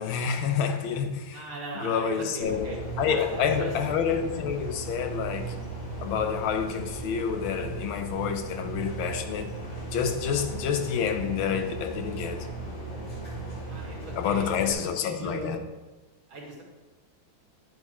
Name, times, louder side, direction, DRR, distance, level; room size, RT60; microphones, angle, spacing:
voice 1, 0.0-1.4 1.7-5.5 6.0-9.5 9.9-12.5 14.2-15.7, left 7 dB, 85° left, 1.6 m, -28 dB
voice 2, 1.3-2.8 3.1-3.7 13.6-15.5 16.3-16.6, right 3 dB, 80° right, 3.1 m, -39 dB
sound 1, 2.4-14.7, right 2 dB, 65° left, 3.2 m, -37 dB
10.5 x 8.3 x 3.1 m
omnidirectional pair, 2.2 m